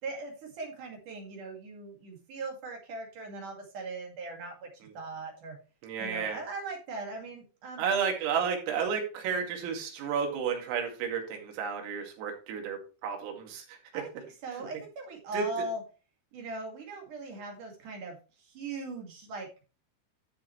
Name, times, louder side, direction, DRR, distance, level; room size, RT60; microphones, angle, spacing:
voice 1, 0.0-4.7 4.9-5.6 6.0-7.8 13.9-14.1 14.4-15.8 16.3-19.5, right 3 dB, 50° right, 1 dB, 3.1 m, -39 dB
voice 2, 5.8-6.4 7.8-14.0 15.3-15.6, right 6 dB, 80° right, 3 dB, 4.8 m, -32 dB
13.0 x 6.7 x 3.2 m, 0.32 s
omnidirectional pair, 5.9 m